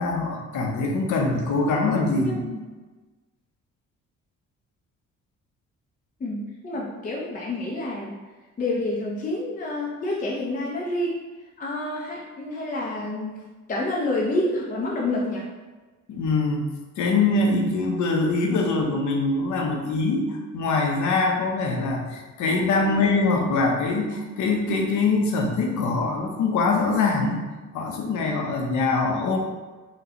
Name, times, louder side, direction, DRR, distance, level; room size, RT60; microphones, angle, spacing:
voice 1, 0.0-2.6 16.1-16.6 17.0-27.4 27.7-29.4, left 3 dB, 75° left, 1 dB, 0.7 m, -23 dB
voice 2, 6.2-8.1 8.6-11.2 11.6-13.4 13.7-15.4 22.8-23.1, left 2 dB, 25° left, -4 dB, 0.5 m, -28 dB
4.0 x 2.3 x 2.8 m, 1.3 s
cardioid pair, 90°, 30 cm